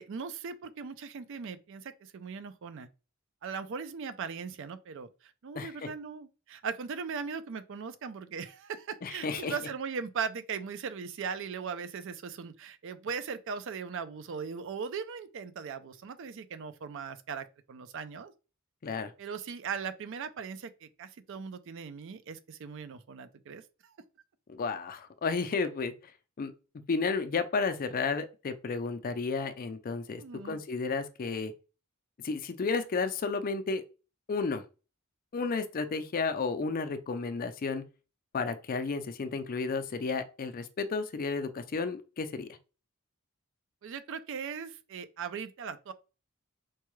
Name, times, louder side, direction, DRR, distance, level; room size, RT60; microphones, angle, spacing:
voice 1, 0.0-2.9 3.4-18.3 19.2-23.9 30.2-30.6 43.8-45.9, right 6 dB, 60° right, 0.4 m, -39 dB
voice 2, 5.5-5.9 9.0-9.5 18.8-19.1 24.5-26.1 26.4-26.5 26.9-31.5 32.2-33.8 34.3-34.6 35.3-37.8 38.3-42.6, left 4 dB, 40° left, 0.4 m, -32 dB
4.5 x 2.2 x 3.1 m
head